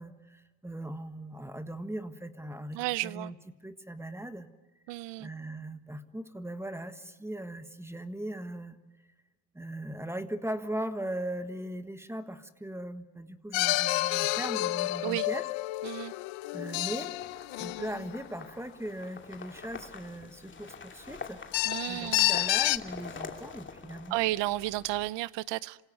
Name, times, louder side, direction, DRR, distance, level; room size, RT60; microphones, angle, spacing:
voice 1, 0.0-3.4 3.6-4.5 5.2-8.8 9.5-15.4 16.5-17.1 17.6-24.2, right 1 dB, 5° right, 10 dB, 1.5 m, -39 dB
voice 2, 2.7-3.3 4.9-5.3 15.0-15.3 15.8-16.1 21.7-22.3 24.1-25.8, right 18 dB, 60° right, 20 dB, 0.8 m, -32 dB
sound 1, 13.5-18.4 21.5-22.8, left 20 dB, 70° left, 0.9 m, -29 dB
sound 2, 17.1-25.1, left 5 dB, 25° left, 2.5 m, -45 dB
27.0 x 17.0 x 9.7 m, 1.2 s
supercardioid pair, 100°, 47 cm